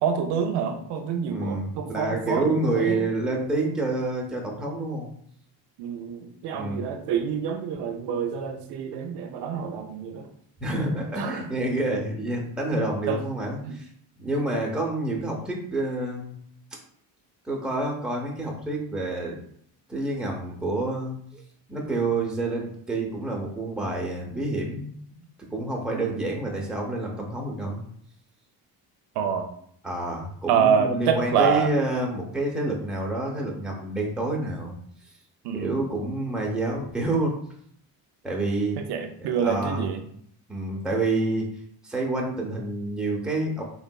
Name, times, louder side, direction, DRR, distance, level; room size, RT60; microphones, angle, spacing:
voice 1, 0.0-3.0 5.8-10.3 11.2-11.4 13.1-13.2 13.6-13.7 25.9-26.1 29.2-29.5 30.5-31.7 35.4-35.8 38.9-40.0, right 7 dB, 70° right, 5 dB, 0.5 m, -27 dB
voice 2, 1.3-5.1 6.5-6.8 10.6-13.9 14.2-16.4 17.4-19.4 19.9-21.4 21.7-25.2 25.5-27.8 29.8-34.8 35.5-37.4 38.2-38.8 39.2-39.9 40.5-41.5 41.8-43.6, right 2 dB, ahead, -2 dB, 0.7 m, -28 dB
3.6 x 2.5 x 2.2 m, 0.65 s
cardioid pair, 90°, 42 cm